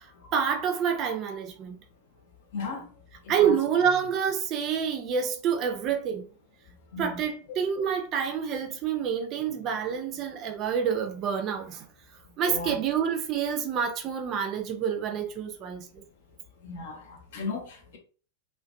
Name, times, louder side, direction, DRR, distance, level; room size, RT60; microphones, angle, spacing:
voice 1, 0.3-1.8 3.3-6.3 7.0-11.8 12.4-15.9, right 7 dB, 35° right, 0.4 m, -27 dB
voice 2, 2.5-2.9 3.4-3.5 6.9-7.1 12.5-12.8 16.6-18.0, left 4 dB, 55° left, 0.7 m, -35 dB
2.4 x 2.1 x 2.5 m
figure-of-eight pair, 90°, 0 cm